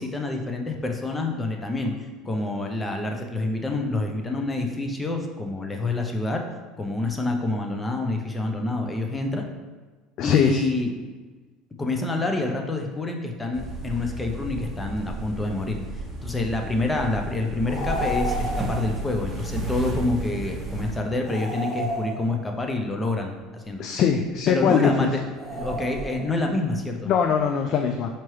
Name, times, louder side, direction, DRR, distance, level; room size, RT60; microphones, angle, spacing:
voice 1, 0.0-1.9 2.2-6.4 6.8-9.4 10.2-10.9 11.8-15.8 16.2-23.8 24.5-25.2 25.5-27.1, left 2 dB, 15° left, 3 dB, 0.7 m, -27 dB
voice 2, 10.2-10.6 23.8-25.1 27.1-28.1, left 7 dB, 55° left, 4 dB, 0.3 m, -21 dB
sound 1, 13.5-21.0, right 1 dB, 25° right, 0.8 m, -33 dB
sound 2, 17.6-19.0 21.2-22.7 25.3-26.5, right 1 dB, 35° left, 1.2 m, -31 dB
4.5 x 2.9 x 3.1 m, 1.3 s
hypercardioid pair, 80°, 0 cm